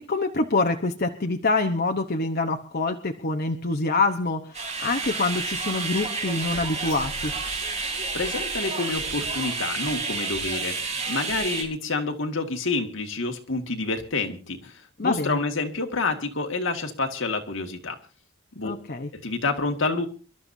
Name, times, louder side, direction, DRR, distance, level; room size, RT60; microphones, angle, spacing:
voice 1, 0.1-7.3 15.0-15.4 18.6-19.1, left 3 dB, 50° left, 4 dB, 1.0 m, -26 dB
sound 1, 4.5-11.6, right 4 dB, 35° right, 3.2 m, -30 dB
voice 2, 8.1-18.0 18.6-18.7 19.1-20.1, left 3 dB, 75° left, 4 dB, 2.0 m, -28 dB
27.5 x 12.5 x 2.8 m, 0.36 s
head